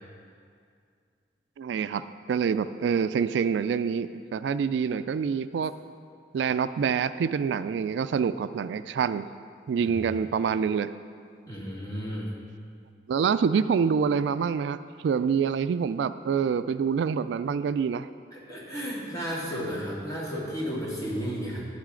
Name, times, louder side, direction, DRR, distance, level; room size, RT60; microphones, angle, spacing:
voice 1, 1.6-2.0 2.3-5.7 6.3-9.3 9.7-10.9 13.1-14.8 15.0-18.1, right 6 dB, 90° right, 13 dB, 0.3 m, -26 dB
voice 2, 11.5-12.3 18.3-21.7, equal, 20° left, -6 dB, 2.1 m, -33 dB
11.5 x 8.9 x 3.8 m, 2.2 s
head